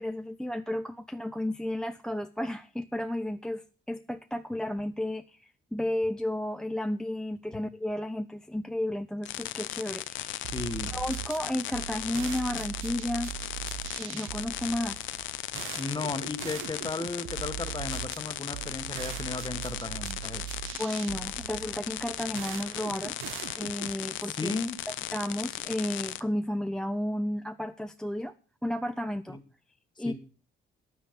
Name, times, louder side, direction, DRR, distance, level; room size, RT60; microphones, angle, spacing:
voice 1, 0.0-10.5 10.9-13.3 14.0-15.0 20.8-23.2 23.5-24.5 24.9-28.3 28.6-29.4 30.0-30.1, left 1 dB, 5° left, 12 dB, 0.5 m, -33 dB
sound 1, 9.2-26.2, left 13 dB, 75° left, 0.6 m, -37 dB
sound 2, 10.4-24.1, right 14 dB, 90° right, 0.6 m, -41 dB
voice 2, 10.5-11.0 15.7-20.6 24.3-24.8 29.3-29.4 30.0-30.1, left 3 dB, 20° left, 9 dB, 1.3 m, -35 dB
10.0 x 9.2 x 5.2 m, 0.39 s
cardioid pair, 90°, 20 cm